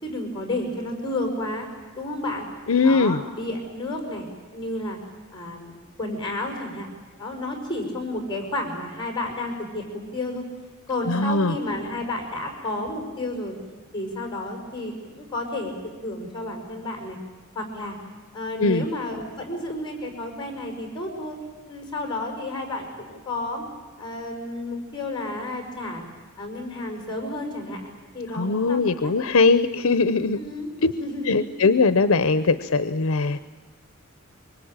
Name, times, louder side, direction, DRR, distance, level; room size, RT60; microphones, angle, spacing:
voice 1, 0.0-1.7 2.0-2.4 2.8-5.0 5.3-6.9 7.2-10.4 10.9-13.5 13.9-17.2 17.5-18.0 18.3-21.4 21.7-23.6 24.0-26.0 26.4-29.1 30.4-30.7 31.0-31.3, left 1 dB, 20° left, 3 dB, 5.2 m, -31 dB
voice 2, 2.7-3.2 11.1-11.6 18.6-18.8 28.3-30.4 30.8-30.9 31.3-33.4, left 4 dB, 75° left, 12 dB, 0.7 m, -20 dB
24.5 x 24.0 x 8.9 m, 1.4 s
head